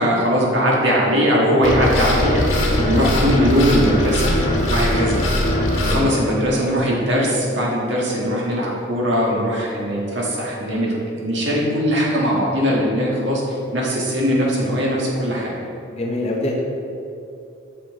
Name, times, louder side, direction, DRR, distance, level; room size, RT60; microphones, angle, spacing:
voice 1, 0.0-4.4 4.7-5.2 5.8-15.6, equal, 65° right, -4 dB, 1.7 m, -20 dB
sound 1, 1.6-6.0, left 1 dB, 85° left, 1.5 m, -20 dB
voice 2, 5.9-6.2 15.9-16.6, left 1 dB, 30° left, -1 dB, 0.9 m, -24 dB
8.5 x 5.9 x 3.7 m, 2.7 s
head